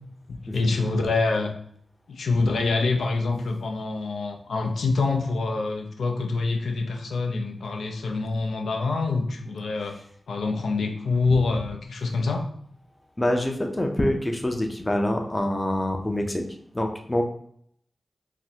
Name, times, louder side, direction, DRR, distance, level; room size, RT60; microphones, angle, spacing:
voice 1, 0.3-1.5 2.1-10.0 10.3-12.5, left 3 dB, 85° left, 3 dB, 0.4 m, -26 dB
voice 2, 13.2-16.4 16.7-17.2, left 1 dB, 25° left, 3 dB, 0.5 m, -25 dB
3.9 x 2.1 x 2.8 m, 0.66 s
cardioid pair, 45°, 0 cm